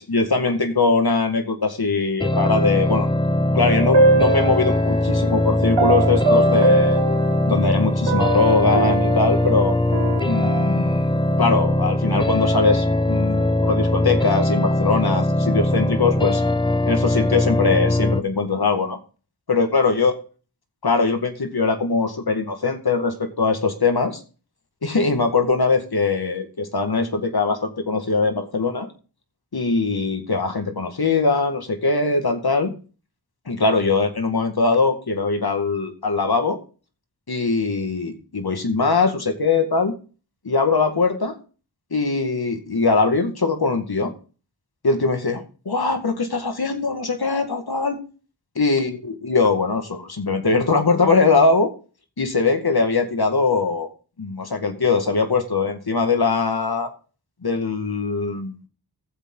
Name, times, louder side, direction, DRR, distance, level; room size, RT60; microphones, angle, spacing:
voice 1, 0.0-3.1 3.5-7.0 7.5-9.8 10.2-11.1 11.4-16.4 16.9-19.0 19.5-20.1 20.8-24.2 24.8-28.9 29.5-32.7 33.5-36.6 37.3-39.9 40.4-41.4 41.9-44.1 44.8-48.0 48.6-51.7 52.2-53.9 54.2-56.9 57.4-58.5, left 4 dB, 60° left, 6 dB, 2.1 m, -21 dB
sound 1, 2.2-18.2, left 1 dB, 10° left, 0.8 m, -21 dB
sound 2, 3.7-5.1 5.8-7.8 8.1-11.0, right 2 dB, 80° right, 1.5 m, -22 dB
15.0 x 7.4 x 3.8 m, 0.36 s
wide cardioid pair, 45°, 42 cm